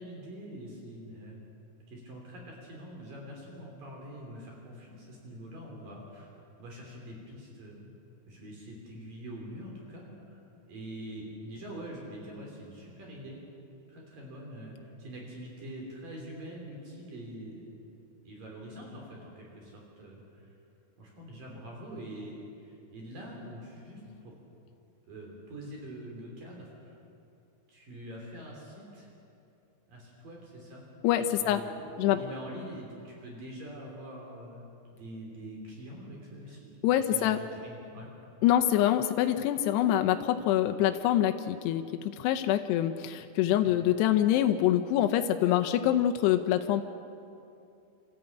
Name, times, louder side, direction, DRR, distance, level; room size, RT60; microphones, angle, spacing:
voice 1, 0.0-1.4 1.9-6.3 6.6-7.9 8.2-10.4 10.7-13.4 13.9-17.8 18.2-20.5 21.0-24.3 25.1-27.0 27.7-29.1 29.9-30.8 31.4-34.6 34.9-36.7 37.1-38.1 43.6-43.7, equal, 55° right, -1 dB, 4.8 m, -44 dB
voice 2, 31.0-31.6 32.0-32.2 36.8-37.4 38.4-46.8, left 12 dB, 80° left, 6 dB, 2.8 m, -25 dB
27.5 x 14.0 x 8.9 m, 2.7 s
omnidirectional pair, 4.9 m